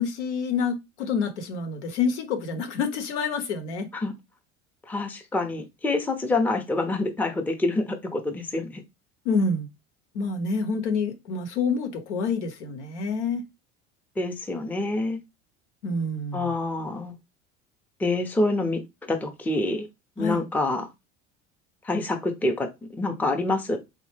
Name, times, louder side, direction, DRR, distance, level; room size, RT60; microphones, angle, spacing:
voice 1, 0.0-3.9 9.2-9.7 10.1-13.4 15.8-16.5 20.2-20.4, left 4 dB, 80° left, 0.8 m, -27 dB
voice 2, 4.9-8.8 14.2-15.2 16.3-17.1 18.0-18.8 19.1-19.9 20.2-20.9 21.8-23.8, left 2 dB, 5° left, 0.5 m, -26 dB
3.3 x 2.0 x 3.1 m
hypercardioid pair, 75°, 34 cm